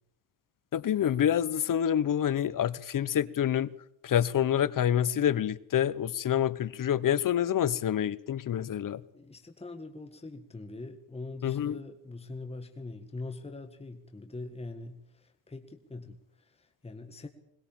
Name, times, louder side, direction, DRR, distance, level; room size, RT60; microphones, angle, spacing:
voice 1, 0.7-3.7 4.0-9.0 11.4-11.8, left 10 dB, 45° left, 1.0 m, -27 dB
voice 2, 9.1-17.3, left 2 dB, 15° left, 1.9 m, -43 dB
22.0 x 21.0 x 7.4 m
cardioid pair, 120°, 44 cm